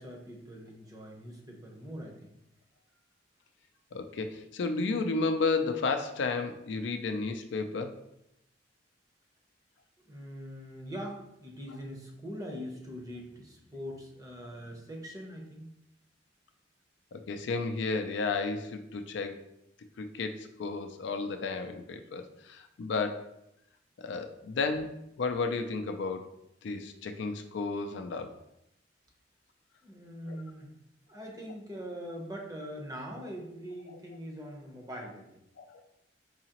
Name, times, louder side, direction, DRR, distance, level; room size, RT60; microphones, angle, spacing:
voice 1, 0.0-2.3 10.1-15.7 29.8-30.7 31.1-35.3, equal, 20° right, 0 dB, 0.7 m, -42 dB
voice 2, 3.9-8.0 14.4-14.6 17.1-19.4 20.0-23.3 24.0-26.3 26.6-28.3 30.3-30.4 33.9-34.0 35.6-35.8, left 4 dB, 65° left, 7 dB, 0.4 m, -33 dB
4.7 x 2.9 x 2.9 m, 0.82 s
head